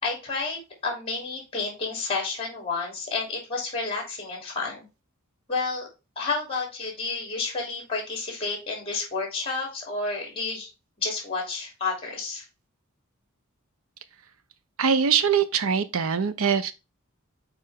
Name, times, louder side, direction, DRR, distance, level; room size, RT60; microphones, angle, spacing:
voice 1, 0.0-4.9 5.5-5.9 6.2-10.7 11.0-12.4, left 3 dB, 25° left, 2.8 m, -30 dB
voice 2, 14.8-16.7, right 6 dB, 80° right, 0.7 m, -23 dB
6.8 x 4.4 x 3.5 m
head